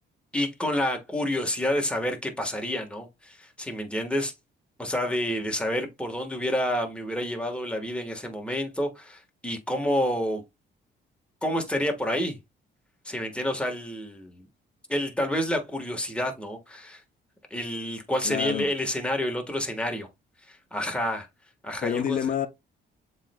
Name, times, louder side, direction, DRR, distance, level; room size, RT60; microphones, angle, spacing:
voice 1, 0.3-4.3 4.8-10.4 11.4-12.4 13.0-14.4 14.9-17.0 17.5-20.1 20.5-21.3 21.6-22.3, left 1 dB, 5° left, 1.3 m, -29 dB
voice 2, 18.2-18.7 21.8-22.5, left 9 dB, 45° left, 0.6 m, -27 dB
7.2 x 3.3 x 2.2 m
cardioid pair, 90°, 20 cm